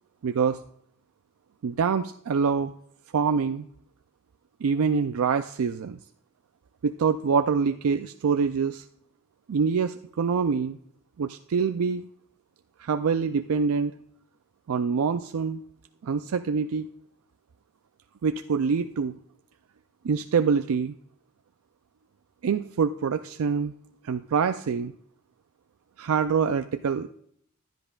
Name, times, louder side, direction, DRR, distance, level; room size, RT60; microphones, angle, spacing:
voice 1, 0.2-0.6 1.6-2.7 3.1-3.7 4.6-6.0 6.8-8.8 9.5-10.8 11.2-12.1 12.8-13.9 14.7-15.6 16.0-16.9 18.2-19.1 20.0-20.9 22.4-23.7 24.0-24.9 26.0-27.1, right 6 dB, 75° right, 8 dB, 0.4 m, -25 dB
15.0 x 11.0 x 2.4 m, 0.67 s
head